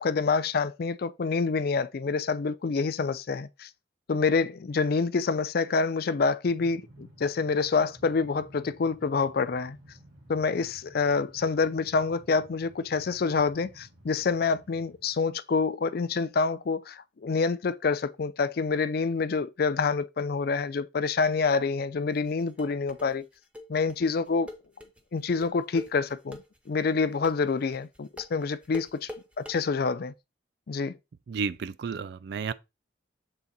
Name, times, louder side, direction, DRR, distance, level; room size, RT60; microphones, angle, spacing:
voice 1, 0.0-3.7 4.1-9.8 10.3-23.2 23.7-24.5 25.1-26.4 26.7-29.1 29.4-30.1 30.7-31.0, left 4 dB, 50° left, 0.4 m, -27 dB
Train, 6.4-15.3, equal, 85° right, 3.1 m, -54 dB
sound 1, 22.1-29.6, left 1 dB, 5° right, 0.8 m, -43 dB
voice 2, 31.3-32.5, right 5 dB, 55° right, 0.3 m, -32 dB
7.2 x 3.5 x 4.0 m
head